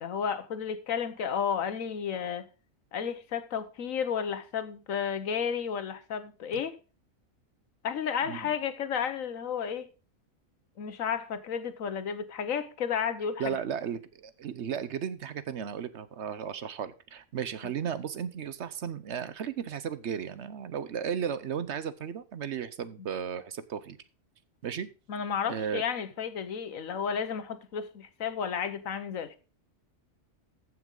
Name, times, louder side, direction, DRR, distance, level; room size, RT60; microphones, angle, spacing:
voice 1, 0.0-2.5 2.9-6.7 7.8-9.9 10.8-13.5 25.1-29.4, left 7 dB, 75° left, 1.4 m, -32 dB
voice 2, 13.4-24.0 24.6-24.9 25.5-25.8, right 7 dB, 60° right, 0.9 m, -35 dB
14.5 x 6.1 x 3.8 m
omnidirectional pair, 1.4 m